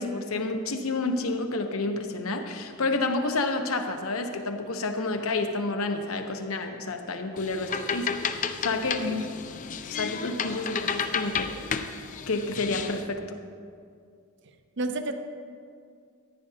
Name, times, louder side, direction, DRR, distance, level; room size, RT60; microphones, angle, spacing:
voice 1, 0.0-9.2 9.9-11.6 12.3-13.4, left 3 dB, 75° left, 6 dB, 0.8 m, -30 dB
sound 1, 7.4-13.1, left 6 dB, 35° left, 0.4 m, -32 dB
voice 2, 9.0-9.3 14.8-15.1, equal, 55° right, 7 dB, 0.6 m, -30 dB
14.0 x 10.0 x 2.8 m, 2.3 s
head